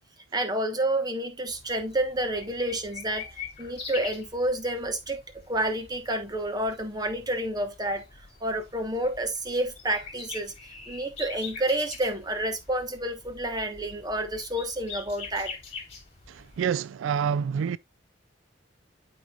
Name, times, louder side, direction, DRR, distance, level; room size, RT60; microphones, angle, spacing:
voice 1, 0.3-3.3 3.6-5.2 5.5-8.0 8.4-10.5 10.9-15.5, right 1 dB, 20° right, 1.2 m, -29 dB
sound 1, 1.5-16.7, left 5 dB, 30° left, 2.5 m, -44 dB
voice 2, 16.3-17.8, right 7 dB, 80° right, 0.3 m, -27 dB
12.0 x 4.4 x 2.4 m
head